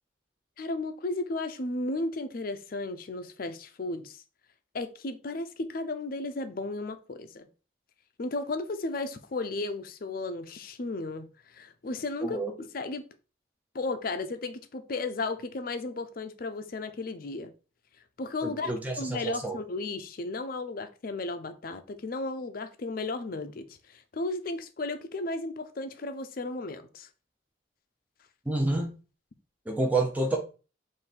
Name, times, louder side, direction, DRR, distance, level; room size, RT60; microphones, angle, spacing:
voice 1, 0.6-4.2 4.7-7.5 8.2-13.0 13.7-17.5 18.2-27.1, left 2 dB, 45° left, 0.5 m, -34 dB
voice 2, 12.2-12.5 18.4-19.6 28.5-28.9 29.7-30.4, right 2 dB, 10° right, 0.5 m, -28 dB
3.8 x 2.6 x 4.2 m
head